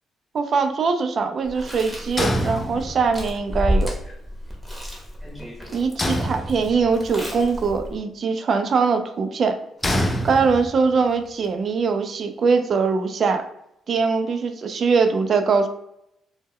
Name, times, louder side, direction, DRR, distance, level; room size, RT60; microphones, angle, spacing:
voice 1, 0.3-3.9 5.7-9.6 10.2-13.4 13.9-15.7, right 5 dB, 50° right, 7 dB, 0.3 m, -22 dB
Chewing mastication, 1.4-8.0, equal, 5° right, 0.7 m, -31 dB
sound 1, 2.2-3.3 6.0-7.0 9.8-10.9, equal, 20° left, 0.4 m, -25 dB
2.1 x 2.1 x 3.4 m, 0.79 s
cardioid pair, 90°, 0 cm